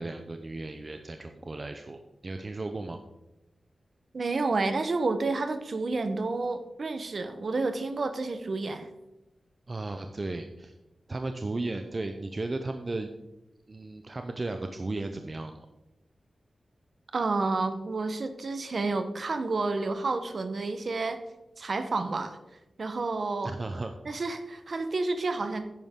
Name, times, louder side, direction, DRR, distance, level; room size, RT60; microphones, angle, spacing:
voice 1, 0.0-3.0 9.7-10.8 11.1-13.1 13.7-15.7 23.4-23.9, right 2 dB, 30° right, 6 dB, 0.6 m, -35 dB
voice 2, 4.1-8.9 17.1-21.2 21.6-22.4 22.8-23.5 24.1-25.6, right 3 dB, 50° right, 9 dB, 0.9 m, -30 dB
10.5 x 9.4 x 3.7 m, 0.95 s
wide cardioid pair, 140°, 0 cm